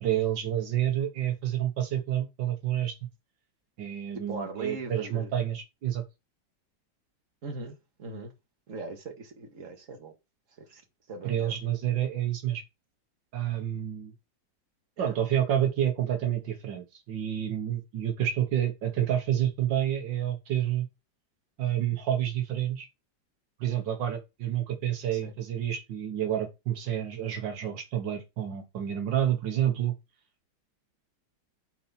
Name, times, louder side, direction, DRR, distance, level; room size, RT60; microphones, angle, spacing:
voice 1, 0.0-2.9 3.8-6.0 11.2-12.6 13.3-14.1 15.0-20.9 21.6-22.9 23.6-30.0, right 11 dB, 80° right, 1.9 m, -29 dB
voice 2, 4.3-5.3 7.4-8.3 8.7-10.1 10.6-10.8 11.1-11.5 15.0-15.2 25.1-25.3, right 3 dB, 45° right, 2.1 m, -40 dB
6.9 x 4.3 x 5.8 m
omnidirectional pair, 2.0 m